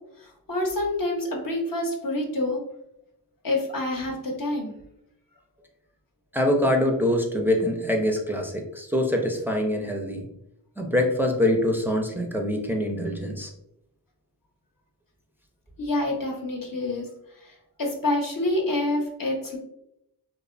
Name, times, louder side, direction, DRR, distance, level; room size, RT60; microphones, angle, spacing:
voice 1, 0.2-2.6 3.4-4.7 15.8-17.1 17.4-19.6, left 2 dB, 55° left, 0 dB, 0.6 m, -27 dB
voice 2, 6.3-10.2 10.8-13.5, left 1 dB, 5° right, 1 dB, 0.4 m, -24 dB
2.7 x 2.0 x 2.5 m, 0.81 s
cardioid pair, 50°, 40 cm